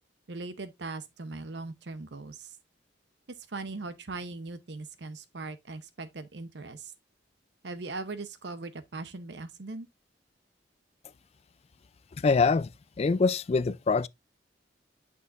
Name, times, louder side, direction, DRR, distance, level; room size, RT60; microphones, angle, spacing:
voice 1, 0.3-2.6 3.5-6.9 7.6-9.9, right 3 dB, 65° right, 0.7 m, -39 dB
voice 2, 12.2-12.7 13.0-14.1, left 4 dB, 35° left, 0.3 m, -24 dB
8.4 x 6.3 x 2.5 m
head